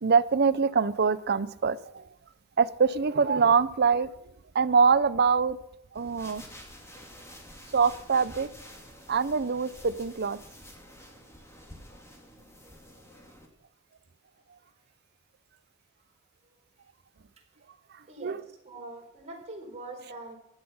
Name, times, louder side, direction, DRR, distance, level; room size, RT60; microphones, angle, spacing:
voice 1, 0.0-2.0 2.6-4.1 4.5-5.6 5.9-6.5 7.7-8.5 9.1-10.4 18.2-18.4, right 5 dB, 55° right, 14 dB, 0.7 m, -24 dB
sound 1, 5.9-13.5, equal, 15° left, 2.5 m, -49 dB
voice 2, 18.1-20.4, right 2 dB, 35° right, -1 dB, 4.4 m, -43 dB
15.5 x 10.5 x 5.6 m, 0.80 s
head